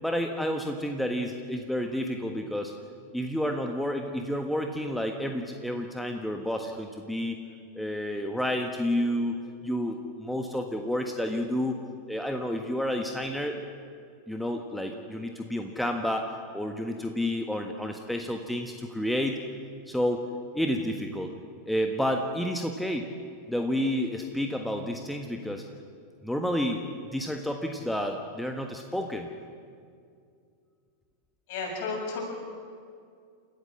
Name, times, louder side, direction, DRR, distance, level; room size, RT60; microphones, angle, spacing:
voice 1, 0.0-2.7 3.1-7.4 7.7-9.4 9.6-11.7 12.1-13.6 14.3-19.4 19.9-20.3 20.5-21.3 21.7-23.1 23.5-25.6 26.2-26.8 27.1-29.3, equal, ahead, 4 dB, 1.5 m, -30 dB
voice 2, 31.5-32.2, left 4 dB, 50° left, 0 dB, 7.6 m, -32 dB
29.5 x 14.5 x 7.6 m, 2.3 s
figure-of-eight pair, 90°, 0 cm